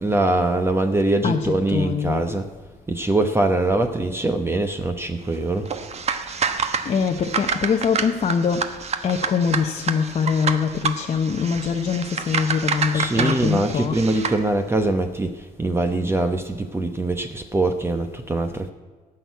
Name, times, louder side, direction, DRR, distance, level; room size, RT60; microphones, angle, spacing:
voice 1, 0.0-2.5 2.9-5.7 12.9-18.7, right 2 dB, 15° right, 0.9 m, -23 dB
voice 2, 1.2-2.2 6.8-8.8 9.0-14.1, left 6 dB, 40° left, 0.8 m, -23 dB
sound 1, 5.6-14.4, right 5 dB, 40° right, 1.1 m, -28 dB
15.5 x 6.4 x 9.4 m
cardioid pair, 110°, 17 cm